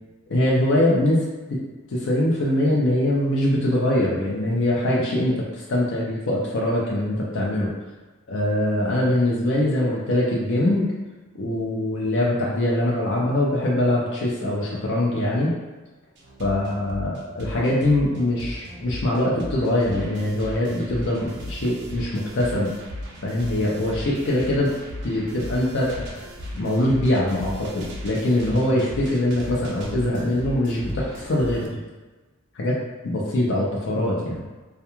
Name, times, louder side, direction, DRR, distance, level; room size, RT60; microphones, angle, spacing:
voice 1, 0.3-1.6 1.9-7.7 8.3-10.9 11.3-15.5 16.4-22.7 23.2-24.7 25.0-26.3 26.5-31.8 32.5-32.8 33.0-34.4, left 1 dB, 55° left, -4 dB, 0.5 m, -23 dB
sound 1, 16.2-31.7, equal, 50° right, 0.4 m, -37 dB
2.3 x 2.2 x 2.9 m, 1.2 s
head